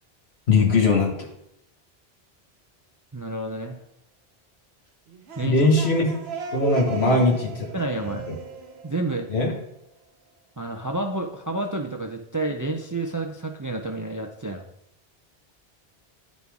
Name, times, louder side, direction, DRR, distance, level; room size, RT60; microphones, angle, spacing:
voice 1, 0.5-1.1 5.4-6.1 6.5-7.4 8.3-8.4 9.3-9.5, left 3 dB, 80° left, 2 dB, 1.6 m, -19 dB
voice 2, 3.1-3.8 5.4-5.6 7.0-7.2 7.7-8.2 8.8-9.3 10.6-14.6, right 2 dB, 25° right, 4 dB, 0.4 m, -29 dB
sound 1, 5.1-9.8, right 6 dB, 80° right, 1.0 m, -37 dB
11.0 x 4.1 x 3.5 m, 0.79 s
omnidirectional pair, 1.1 m